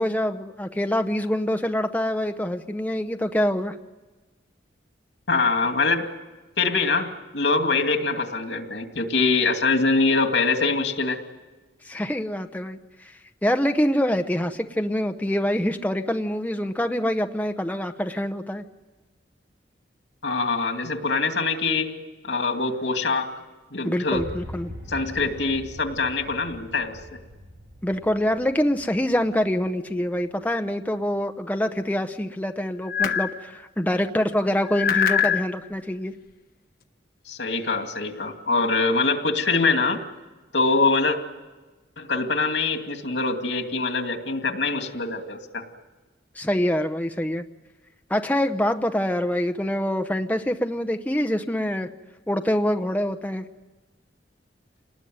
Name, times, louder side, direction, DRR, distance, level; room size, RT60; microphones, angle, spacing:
voice 1, 0.0-3.8 11.8-13.1 13.4-18.6 23.8-24.7 27.8-36.1 46.4-47.4 48.1-51.9 52.3-53.4, equal, 10° left, 6 dB, 0.8 m, -25 dB
voice 2, 5.3-6.1 6.6-11.2 20.2-21.9 22.2-23.3 23.7-24.2 24.9-27.0 37.3-40.0 40.5-41.2 42.0-45.6, left 3 dB, 80° left, 5 dB, 2.5 m, -24 dB
sound 1, 24.1-30.3, equal, 80° right, 7.5 m, -42 dB
sound 2, 32.9-33.3 34.6-35.4, left 8 dB, 55° left, 1.2 m, -22 dB
28.0 x 19.5 x 9.4 m, 1.2 s
head